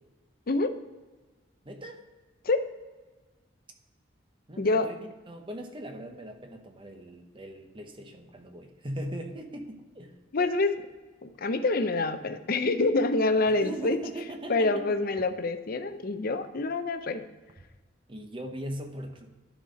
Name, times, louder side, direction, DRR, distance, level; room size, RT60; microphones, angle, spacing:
voice 1, 1.6-2.0 4.5-5.0 5.3-10.1 13.6-15.0 18.1-19.3, right 1 dB, 25° right, 5 dB, 0.9 m, -40 dB
voice 2, 4.6-4.9 10.3-10.7 11.2-14.0 14.5-17.2, left 3 dB, 50° left, 9 dB, 0.6 m, -26 dB
11.0 x 4.3 x 5.0 m, 1.3 s
head